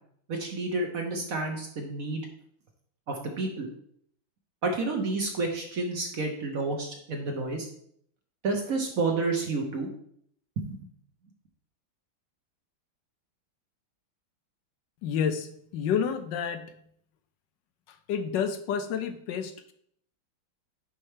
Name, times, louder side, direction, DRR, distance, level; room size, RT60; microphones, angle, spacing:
voice 1, 0.3-2.2 3.1-3.7 4.6-7.7 8.4-9.9 10.6-10.8, right 3 dB, 55° right, 3 dB, 1.0 m, -30 dB
voice 2, 15.0-16.7 18.1-19.7, left 7 dB, 75° left, 9 dB, 1.1 m, -29 dB
9.7 x 4.4 x 3.3 m, 0.67 s
omnidirectional pair, 2.3 m